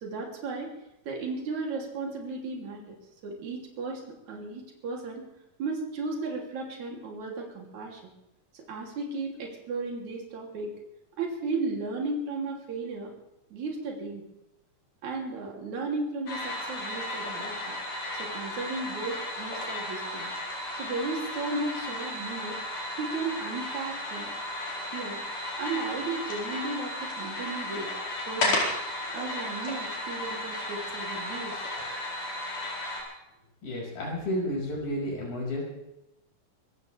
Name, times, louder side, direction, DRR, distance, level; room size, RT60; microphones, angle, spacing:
voice 1, 0.0-0.7 1.1-3.0 3.2-4.0 4.3-5.3 5.6-8.1 8.5-10.7 11.2-13.1 13.5-14.2 15.0-17.8 18.2-20.3 20.8-22.6 23.0-24.3 24.9-25.2 25.6-27.9 28.3-28.7 29.1-31.6, right 3 dB, 60° right, 0 dB, 4.2 m, -35 dB
sound 1, 16.3-33.0, left 1 dB, 65° left, 5.9 m, -34 dB
voice 2, 33.6-35.6, left 1 dB, 85° left, -2 dB, 7.5 m, -31 dB
26.5 x 15.0 x 3.4 m, 0.89 s
omnidirectional pair, 3.9 m